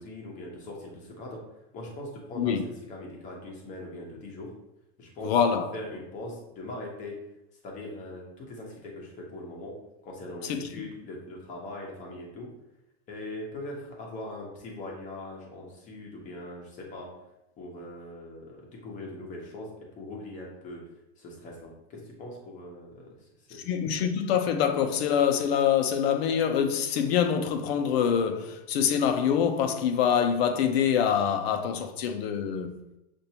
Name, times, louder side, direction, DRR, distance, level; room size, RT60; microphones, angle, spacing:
voice 1, 0.0-1.4 1.7-4.5 5.0-5.4 5.7-7.2 7.6-9.8 10.0-12.5 13.1-17.1 17.6-20.8 21.2-23.6, left 1 dB, 25° left, 0.9 m, -41 dB
voice 2, 5.2-5.7 10.5-10.7 23.6-32.8, left 8 dB, 70° left, 0.7 m, -25 dB
6.7 x 2.6 x 2.9 m
supercardioid pair, 175°, 32 cm